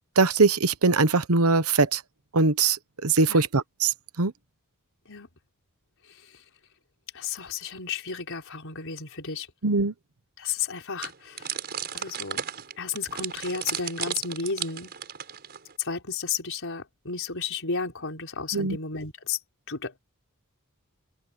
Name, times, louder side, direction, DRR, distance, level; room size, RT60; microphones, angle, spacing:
voice 1, 0.2-2.0 2.3-4.3 9.6-9.9 18.5-18.8, right 3 dB, 70° right, 1.1 m, -22 dB
voice 2, 7.1-9.5 10.4-11.5 11.9-12.4 12.8-14.9 15.8-19.4 19.7-20.0, left 5 dB, 60° left, 5.5 m, -33 dB
sound 1, 11.0-15.7, right 8 dB, 45° right, 5.5 m, -34 dB
open air
head